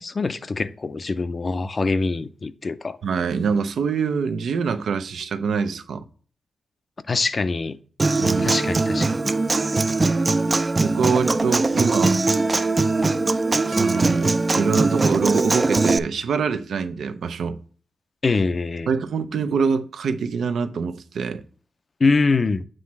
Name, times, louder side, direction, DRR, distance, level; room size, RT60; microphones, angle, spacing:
voice 1, 0.0-3.0 7.1-7.8 8.4-9.3 18.2-18.9 22.0-22.6, left 3 dB, 40° left, 0.4 m, -24 dB
voice 2, 3.0-6.0 8.2-8.6 10.8-12.2 13.7-17.6 18.9-21.4, right 5 dB, 90° right, 0.6 m, -24 dB
Human voice / Acoustic guitar, 8.0-16.0, right 3 dB, 30° right, 0.3 m, -21 dB
7.6 x 3.1 x 5.8 m
wide cardioid pair, 105°, 0 cm